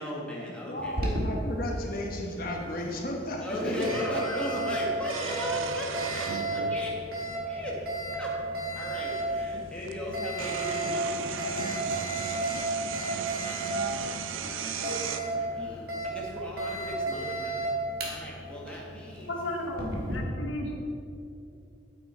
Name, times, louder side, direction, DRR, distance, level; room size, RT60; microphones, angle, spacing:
voice 1, 0.0-1.0 3.4-7.0 7.5-7.8 8.2-8.4 8.8-11.8 13.9-14.2 14.5-14.8 15.2-17.6 18.0-19.3, left 1 dB, 5° left, -5 dB, 1.5 m, -37 dB
voice 2, 0.7-4.0, left 1 dB, 45° left, 0 dB, 1.2 m, -34 dB
Alarm, 0.8-20.2, right 1 dB, 50° right, 1.7 m, -34 dB
sound 1, 2.1-2.2 3.8-4.4 5.0-6.9 7.8-7.9 9.4-9.5 9.8-15.2, right 6 dB, 90° right, 0.5 m, -36 dB
voice 3, 19.3-20.7, left 1 dB, 85° left, 0 dB, 1.4 m, -34 dB
8.8 x 8.7 x 4.4 m, 2.7 s
head